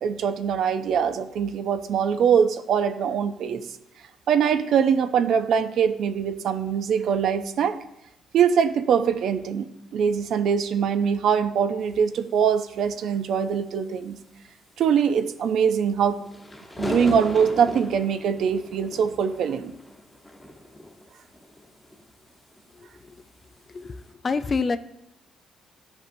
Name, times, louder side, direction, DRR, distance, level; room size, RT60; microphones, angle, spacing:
voice 1, 0.0-3.6 4.3-7.8 8.3-9.7 9.9-14.2 14.8-16.2 16.8-19.7, right 7 dB, 70° right, 9 dB, 0.6 m, -23 dB
sound 1, 16.1-22.6 23.0-23.2 23.8-24.1, left 1 dB, 15° left, 1.1 m, -37 dB
voice 2, 22.8-23.1 23.7-24.8, left 4 dB, 35° left, 12 dB, 0.4 m, -28 dB
13.0 x 5.3 x 2.7 m, 0.81 s
cardioid pair, 90°, 0 cm